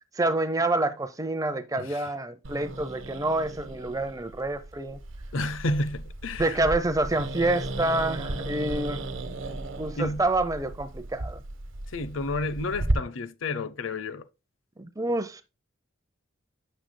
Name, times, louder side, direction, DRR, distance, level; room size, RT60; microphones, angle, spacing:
voice 1, 0.1-5.0 6.4-9.1 9.8-11.4 14.8-15.4, right 2 dB, 15° right, 0.6 m, -27 dB
voice 2, 1.8-2.1 5.3-6.6 10.0-10.2 11.9-14.3, left 2 dB, 75° left, 0.7 m, -31 dB
Growling, 2.4-12.9, right 2 dB, 70° right, 1.0 m, -35 dB
9.6 x 6.6 x 2.2 m
head